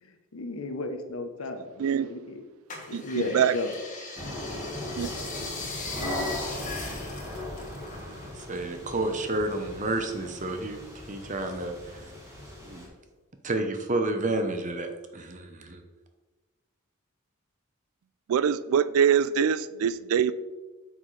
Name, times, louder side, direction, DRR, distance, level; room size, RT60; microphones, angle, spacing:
voice 1, 0.0-2.4 2.9-3.7 4.2-4.4, left 2 dB, 70° left, 6 dB, 0.9 m, -34 dB
voice 2, 1.8-2.1 2.9-3.5 5.0-5.1 18.3-20.3, right 8 dB, 75° right, 16 dB, 0.3 m, -24 dB
sound 1, 2.7-8.5 8.8-10.1 10.6-11.4 11.9-12.0, left 3 dB, 35° left, 1.5 m, -39 dB
sound 2, 4.2-12.9, left 1 dB, 15° right, 1.8 m, -38 dB
voice 3, 8.2-10.8 11.1-12.1 12.6-12.9 13.4-15.8, right 2 dB, 35° right, 6 dB, 0.8 m, -30 dB
8.7 x 6.4 x 3.3 m, 1.3 s
head